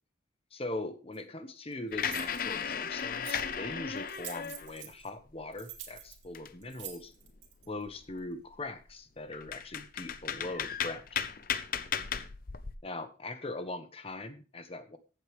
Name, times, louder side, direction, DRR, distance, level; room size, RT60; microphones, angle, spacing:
voice 1, 0.5-7.1 7.7-11.0 12.8-15.0, left 2 dB, 30° left, 10 dB, 1.1 m, -41 dB
sound 1, 1.1-1.2 2.0-2.4 3.0-3.5 4.0-5.1 5.5-7.7, right 10 dB, 85° right, 2.2 m, -46 dB
sound 2, 1.9-4.9 5.4-6.9 7.3-7.4 7.8-8.3 8.9-9.0 9.3-12.8, left 7 dB, 50° left, 0.7 m, -36 dB
14.5 x 8.0 x 3.5 m, 0.34 s
head